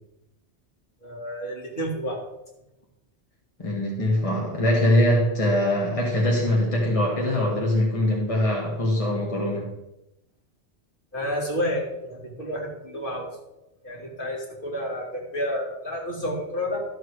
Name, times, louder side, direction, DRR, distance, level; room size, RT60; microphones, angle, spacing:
voice 1, 1.0-2.2 11.1-13.3 13.8-16.8, equal, 50° left, -2 dB, 2.7 m, -30 dB
voice 2, 3.6-9.7, left 1 dB, 30° left, -3 dB, 1.7 m, -22 dB
13.0 x 7.5 x 4.8 m, 0.92 s
omnidirectional pair, 1.1 m